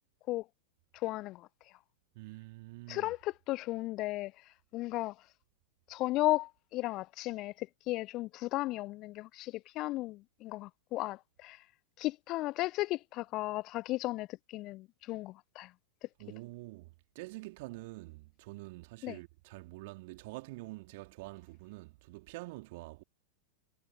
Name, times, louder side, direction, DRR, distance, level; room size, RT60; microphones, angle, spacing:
voice 1, 0.9-1.5 2.9-4.3 4.7-5.2 5.9-11.6 12.0-15.7 19.0-19.2, left 18 dB, 40° left, 0.6 m, -35 dB
voice 2, 2.1-3.1 16.2-23.0, right 22 dB, 50° right, 2.8 m, -46 dB
figure-of-eight pair, 90°, 0 cm